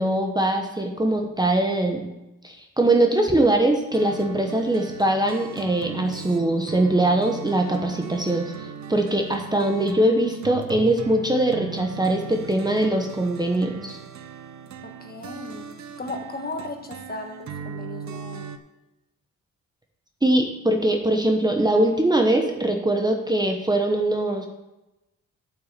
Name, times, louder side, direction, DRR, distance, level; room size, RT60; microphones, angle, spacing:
voice 1, 0.0-2.1 2.4-13.9 20.2-24.5, right 1 dB, 10° right, 3 dB, 1.0 m, -22 dB
sound 1, 3.9-18.6, right 7 dB, 55° right, 0.8 m, -38 dB
voice 2, 14.8-18.5, left 2 dB, 30° left, 4 dB, 1.5 m, -36 dB
8.3 x 6.0 x 7.5 m, 0.99 s
cardioid pair, 90°, 33 cm